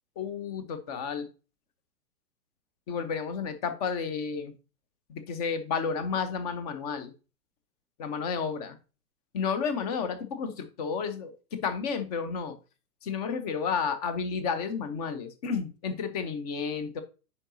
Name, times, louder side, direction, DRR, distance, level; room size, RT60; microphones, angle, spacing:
voice 1, 0.2-1.3 2.9-4.5 5.1-7.1 8.0-8.8 9.3-12.6 13.0-17.0, left 6 dB, 25° left, 11 dB, 0.7 m, -31 dB
9.7 x 4.1 x 2.7 m, 0.33 s
figure-of-eight pair, 110°, 48 cm